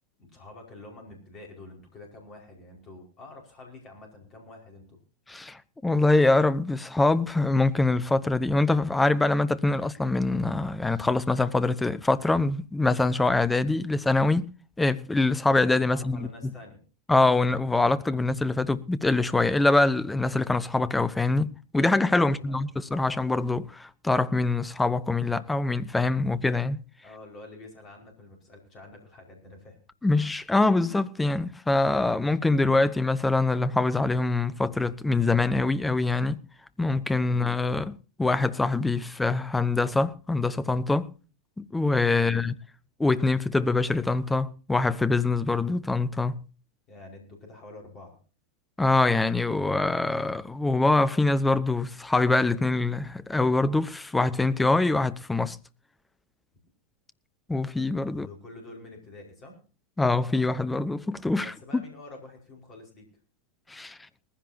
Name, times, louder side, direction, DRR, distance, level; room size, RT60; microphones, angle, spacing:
voice 1, 0.2-5.0 15.9-16.8 22.2-22.7 27.0-29.8 42.1-42.4 46.9-48.2 58.1-59.6 61.4-63.1, left 2 dB, 30° left, 5.0 m, -47 dB
voice 2, 5.3-14.5 14.8-16.3 17.1-26.8 30.0-36.4 36.8-41.1 41.6-42.5 43.0-46.4 48.8-55.6 57.5-58.3 60.0-61.8 63.7-64.0, left 2 dB, 10° left, 0.8 m, -24 dB
19.5 x 15.5 x 2.8 m
figure-of-eight pair, 90°, 0 cm